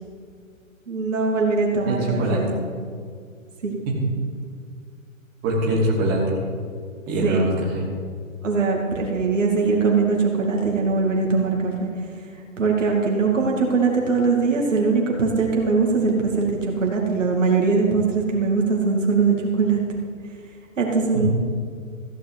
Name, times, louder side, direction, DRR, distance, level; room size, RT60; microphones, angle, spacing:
voice 1, 0.9-2.5 3.6-3.8 7.2-7.4 8.4-11.9 12.6-19.8 20.8-21.3, right 4 dB, 65° right, -1 dB, 2.5 m, -21 dB
voice 2, 1.8-2.4 3.8-3.9 5.4-6.4 7.1-7.8 21.1-21.3, right 1 dB, 20° right, -4 dB, 2.8 m, -23 dB
15.0 x 5.2 x 8.1 m, 2.1 s
figure-of-eight pair, 135°, 40 cm